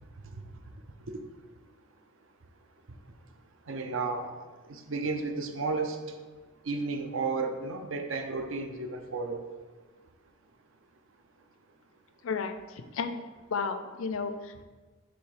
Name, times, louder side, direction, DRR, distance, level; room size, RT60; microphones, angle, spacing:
voice 1, 3.7-4.3 4.7-6.0 6.7-9.4, right 4 dB, 70° right, 6 dB, 0.6 m, -32 dB
voice 2, 12.2-13.2 13.5-14.6, left 5 dB, 75° left, 9 dB, 0.4 m, -33 dB
6.2 x 3.2 x 4.9 m, 1.3 s
head